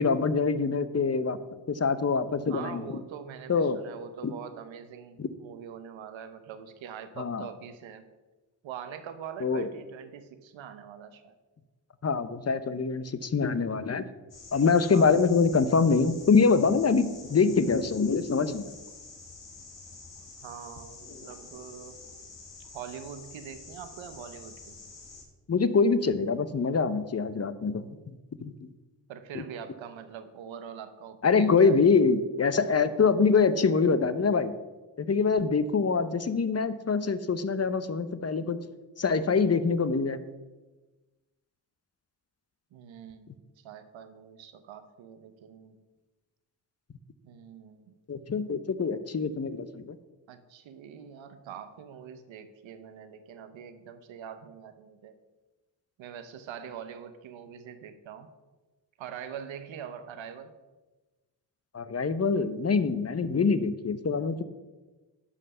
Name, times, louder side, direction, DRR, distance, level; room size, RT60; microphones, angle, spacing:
voice 1, 0.0-1.4 1.7-3.0 3.5-3.8 4.2-4.3 5.2-5.3 7.2-7.5 9.4-9.7 12.0-14.1 14.5-18.7 25.5-27.9 28.4-28.5 29.3-29.4 31.2-34.5 35.0-38.6 39.0-40.2 48.1-50.0 61.7-64.4, left 5 dB, 35° left, 13 dB, 0.8 m, -25 dB
voice 2, 2.5-8.0 8.6-11.3 14.9-15.1 20.4-22.0 22.7-24.8 29.1-31.8 42.7-45.8 47.2-48.0 50.3-55.1 56.0-58.3 59.0-60.5, right 8 dB, 85° right, 10 dB, 1.0 m, -43 dB
sound 1, 14.3-25.2, left 3 dB, 70° left, 2.8 m, -48 dB
11.5 x 5.4 x 5.5 m, 1.2 s
supercardioid pair, 50°, 45 cm